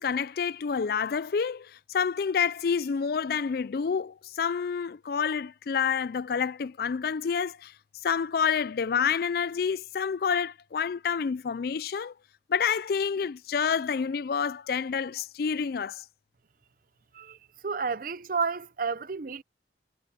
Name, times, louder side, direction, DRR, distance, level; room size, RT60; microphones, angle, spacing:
voice 1, 0.0-7.7 8.0-12.1 12.5-16.0, left 6 dB, 55° left, 0.4 m, -28 dB
voice 2, 17.6-19.4, right 5 dB, 50° right, 0.6 m, -31 dB
head